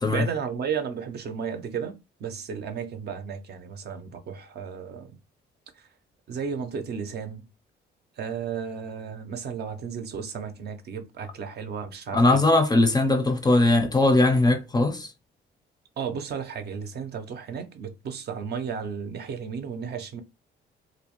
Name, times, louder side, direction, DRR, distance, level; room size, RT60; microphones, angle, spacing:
voice 1, 0.1-1.9 2.2-5.2 6.3-7.5 8.2-12.4 16.0-20.2, right 6 dB, 55° right, 0.5 m, -33 dB
voice 2, 12.1-15.1, left 2 dB, 20° left, 0.4 m, -20 dB
2.5 x 2.0 x 2.9 m
cardioid pair, 90°, 20 cm